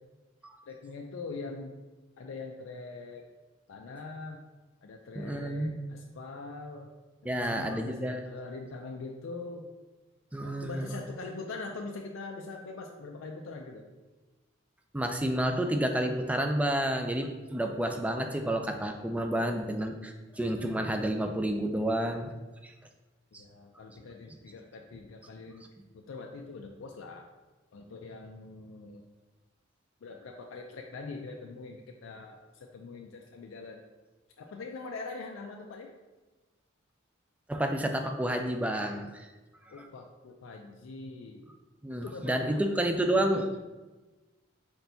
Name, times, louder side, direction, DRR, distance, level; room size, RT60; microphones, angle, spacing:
voice 1, 0.7-1.7 2.2-3.2 3.7-4.4 4.8-6.9 7.3-9.7 10.4-13.9 23.3-25.7 25.9-27.2 27.7-29.0 30.0-33.8 34.4-35.9 39.7-41.4 41.9-42.7, left 3 dB, 80° left, 1 dB, 0.4 m, -43 dB
voice 2, 5.2-5.7 7.2-8.2 10.3-10.9 14.9-22.3 22.6-22.7 37.5-39.3 41.8-43.6, right 1 dB, 5° right, 5 dB, 0.3 m, -30 dB
4.4 x 4.3 x 2.7 m, 1.2 s
head